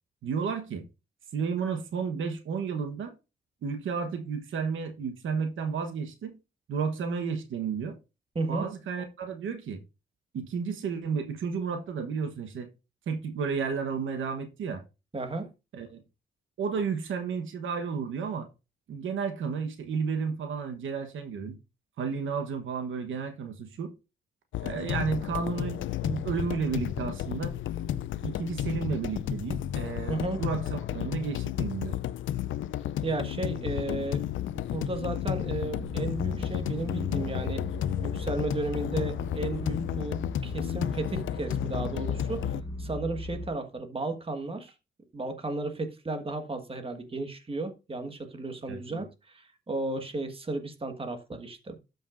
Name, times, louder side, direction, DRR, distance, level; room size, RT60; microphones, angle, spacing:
voice 1, 0.2-0.8 1.3-3.1 3.6-6.3 6.7-8.0 8.5-9.8 10.3-12.7 13.1-14.8 15.7-16.0 16.6-18.5 18.9-21.6 22.0-23.9 24.6-27.5 28.2-32.0 48.7-49.0, right 5 dB, 85° right, 1.1 m, -32 dB
voice 2, 8.3-8.7 15.1-15.5 30.1-30.4 33.0-34.2 34.7-37.6 38.0-42.5 42.8-44.7 45.1-51.8, right 2 dB, 30° right, 1.5 m, -34 dB
sound 1, 24.5-42.6, left 11 dB, 80° left, 0.4 m, -32 dB
sound 2, 35.8-43.5, left 1 dB, 15° left, 1.3 m, -38 dB
12.5 x 5.3 x 2.5 m
cardioid pair, 85°, 20 cm